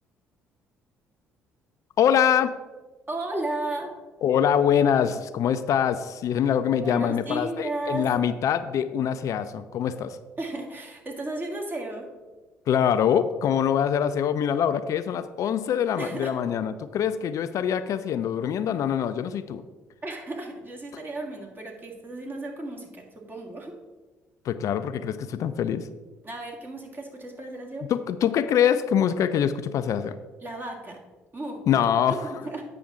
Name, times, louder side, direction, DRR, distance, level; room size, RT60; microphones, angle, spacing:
voice 1, 2.0-2.6 4.2-10.2 12.7-19.6 24.4-25.9 27.9-30.1 31.7-32.2, left 8 dB, 60° left, 11 dB, 0.4 m, -24 dB
voice 2, 3.1-3.9 6.8-8.1 10.4-12.1 16.0-16.3 20.0-23.8 26.2-27.9 30.4-31.0 31.3-32.6, right 2 dB, 30° right, 0 dB, 2.1 m, -34 dB
8.6 x 5.8 x 3.8 m, 1.2 s
hypercardioid pair, 55°, 6 cm